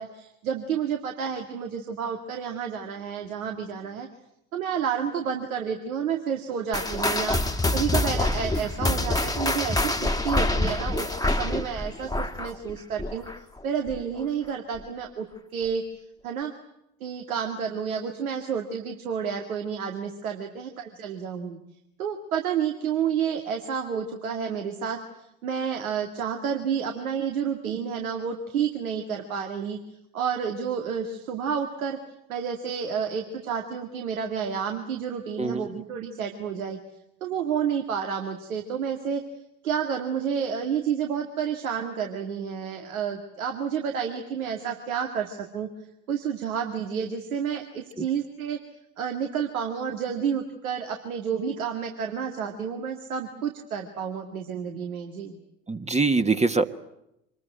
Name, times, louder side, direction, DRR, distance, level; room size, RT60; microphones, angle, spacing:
voice 1, 0.0-4.1 4.5-7.4 7.7-13.3 13.6-15.3 15.5-15.8 16.2-16.5 17.0-21.6 22.0-25.0 25.4-29.8 30.1-32.0 32.3-36.8 37.2-39.2 39.6-45.7 46.1-48.6 49.0-55.4, right 7 dB, 75° right, 4 dB, 2.2 m, -30 dB
sound 1, 6.7-13.6 13.9-14.2 14.8-14.9 15.7-15.8, left 2 dB, 10° left, 1.7 m, -26 dB
voice 2, 35.4-35.8 55.7-56.7, right 3 dB, 15° right, 8 dB, 1.4 m, -24 dB
26.0 x 21.0 x 9.2 m, 0.82 s
figure-of-eight pair, 65°, 42 cm